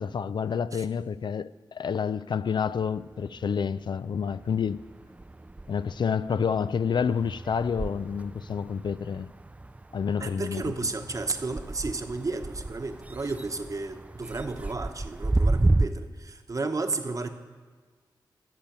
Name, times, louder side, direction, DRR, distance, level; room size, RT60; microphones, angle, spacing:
voice 1, 0.0-4.8 5.7-9.3 9.9-10.6, left 6 dB, 70° left, 0.3 m, -29 dB
sound 1, 2.6-3.8 4.2-15.9, right 2 dB, 15° right, 0.3 m, -32 dB
voice 2, 10.2-17.3, right 3 dB, 45° right, 1.0 m, -33 dB
13.5 x 6.9 x 8.9 m
wide cardioid pair, 95°, 8 cm